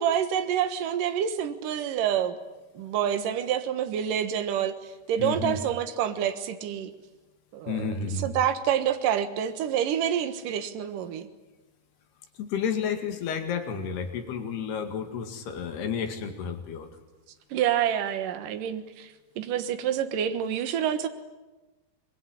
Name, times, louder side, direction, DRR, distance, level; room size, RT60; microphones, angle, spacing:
voice 1, 0.0-2.4 2.7-6.9 7.5-7.8 8.2-11.3 17.5-21.1, right 9 dB, 65° right, 9 dB, 2.8 m, -27 dB
voice 2, 5.2-5.6 7.7-8.3 12.4-16.9, left 6 dB, 80° left, 6 dB, 4.2 m, -31 dB
25.0 x 22.0 x 10.0 m, 1.1 s
omnidirectional pair, 4.6 m